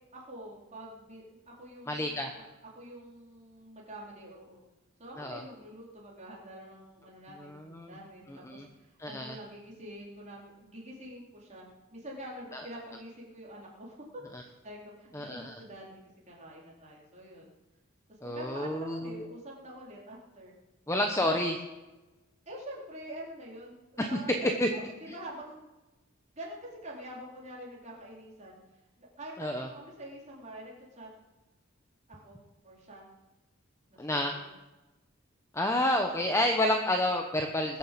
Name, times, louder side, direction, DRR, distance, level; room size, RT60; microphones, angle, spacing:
voice 1, 0.1-4.6 5.0-16.0 16.3-17.5 18.2-20.6 21.2-21.3 22.5-23.8 24.1-25.7 26.3-28.6 29.0-31.1 32.1-33.1 33.9-34.4, right 1 dB, 35° right, -4 dB, 4.1 m, -46 dB
voice 2, 1.9-2.3 5.2-5.4 7.5-7.9 8.5-8.6 9.0-9.3 15.1-15.5 18.2-19.2 20.9-21.5 24.0-24.1 24.6-24.7 29.4-29.7 34.0-34.3 35.5-37.8, left 1 dB, 15° left, 3 dB, 1.0 m, -29 dB
20.5 x 7.4 x 7.6 m, 1.1 s
head